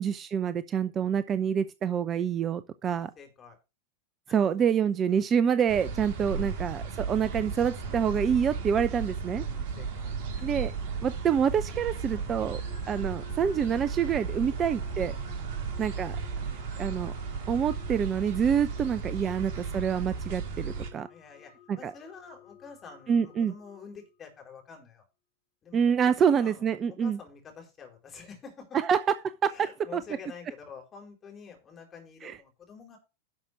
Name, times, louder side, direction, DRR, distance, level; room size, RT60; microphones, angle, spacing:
voice 1, 0.0-3.1 4.3-9.4 10.4-10.7 11.0-12.6 12.9-15.2 15.8-16.2 16.8-17.1 17.5-21.1 21.7-21.9 23.1-23.5 25.7-27.2 28.7-29.0 29.2-30.0 32.2-32.4, right 7 dB, 25° right, 14 dB, 0.6 m, -27 dB
voice 2, 2.8-3.6 4.3-4.4 5.1-5.2 6.3-6.5 7.8-8.0 9.4-10.5 12.1-12.4 12.8-13.1 14.3-14.6 15.4-15.6 16.3-16.7 17.4-17.6 19.2-19.3 20.5-20.7 21.1-25.1 25.6-28.8 29.4-33.0, left 5 dB, 25° left, 2 dB, 4.4 m, -49 dB
sound 1, 5.7-20.9, right 5 dB, 45° right, 2.3 m, -35 dB
sound 2, 12.4-24.4, left 8 dB, 55° left, 3.8 m, -55 dB
11.5 x 5.9 x 5.0 m, 0.28 s
figure-of-eight pair, 90°, 0 cm